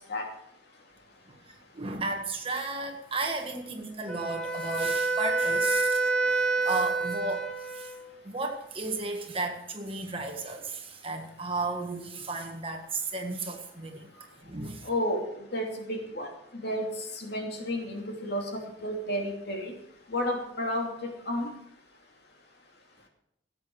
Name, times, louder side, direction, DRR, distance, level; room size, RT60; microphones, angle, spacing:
voice 1, 1.3-7.9 8.2-14.1 14.4-14.9, right 3 dB, 30° right, 3 dB, 1.6 m, -34 dB
Wind instrument woodwind instrument, 4.1-8.1, right 3 dB, 5° left, 1.6 m, -28 dB
voice 2, 14.8-16.3 16.6-19.7 20.1-21.5, equal, 60° left, 2 dB, 2.7 m, -32 dB
17.0 x 8.2 x 6.2 m, 0.72 s
head